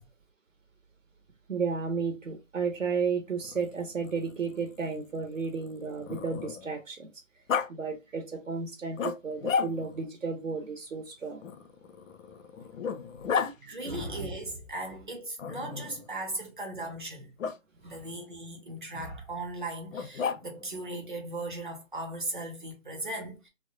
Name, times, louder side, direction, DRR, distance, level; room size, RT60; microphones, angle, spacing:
voice 1, 1.5-7.1 7.7-11.4, right 5 dB, 75° right, 0.7 m, -33 dB
Growling, 3.4-6.8 7.5-7.7 9.0-10.1 11.4-13.5 15.4-16.1 17.4-17.6 19.9-20.7, left 6 dB, 75° left, 0.5 m, -34 dB
voice 2, 13.3-17.3 17.8-23.5, right 2 dB, 40° right, 0.7 m, -37 dB
2.1 x 2.0 x 2.9 m
figure-of-eight pair, 170°, 39 cm